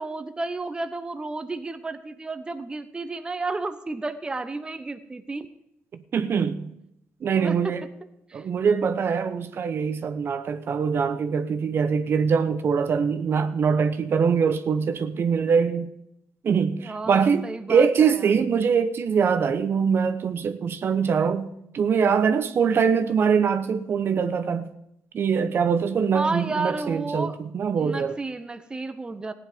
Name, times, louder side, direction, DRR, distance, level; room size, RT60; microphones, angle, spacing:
voice 1, 0.0-5.5 7.2-7.7 8.3-8.4 16.8-18.3 26.1-27.3 27.7-29.3, right 3 dB, 15° right, 0.8 m, -32 dB
voice 2, 6.1-6.7 7.2-7.8 8.3-15.9 16.4-24.7 25.1-28.1, right 6 dB, 50° right, 0.9 m, -23 dB
15.5 x 9.9 x 5.1 m
cardioid pair, 100°, 5 cm